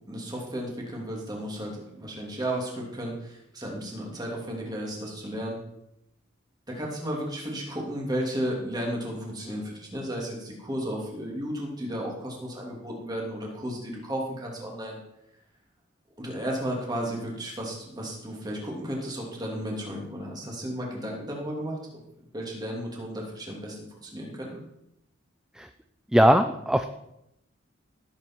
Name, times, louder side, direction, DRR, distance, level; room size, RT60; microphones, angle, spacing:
voice 1, 0.1-5.6 6.7-15.0 16.2-24.6, equal, 20° right, -2 dB, 2.9 m, -34 dB
voice 2, 26.1-26.8, equal, 5° right, 8 dB, 0.4 m, -20 dB
16.0 x 8.4 x 4.7 m, 0.83 s
head